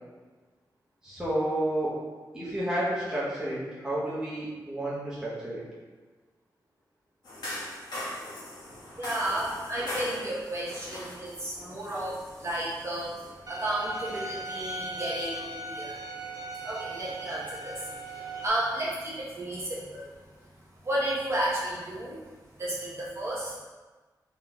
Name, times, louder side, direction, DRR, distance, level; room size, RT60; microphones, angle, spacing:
voice 1, 1.0-2.0 2.3-5.6, right 1 dB, 10° right, -9 dB, 0.8 m, -30 dB
sound 1, 7.2-13.3, left 1 dB, 70° left, 1.3 m, -40 dB
voice 2, 9.0-16.0 16.5-20.1 20.8-22.2 22.6-23.6, right 1 dB, 40° right, -7 dB, 1.0 m, -33 dB
Bowed string instrument, 13.5-18.5, right 2 dB, 55° right, 0.6 m, -38 dB
3.9 x 3.7 x 2.3 m, 1.3 s
wide cardioid pair, 135°, 7 cm